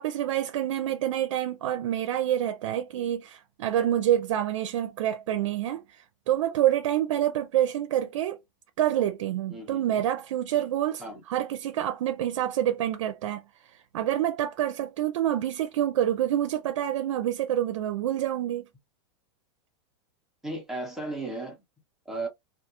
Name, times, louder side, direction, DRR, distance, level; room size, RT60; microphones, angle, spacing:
voice 1, 0.0-8.4 8.8-11.0 11.3-18.7, right 11 dB, 85° right, 0.4 m, -27 dB
voice 2, 9.5-10.0 11.0-11.2 20.4-21.6 22.1-22.3, right 2 dB, ahead, 0.7 m, -35 dB
2.3 x 2.3 x 2.9 m
supercardioid pair, 155°, 16 cm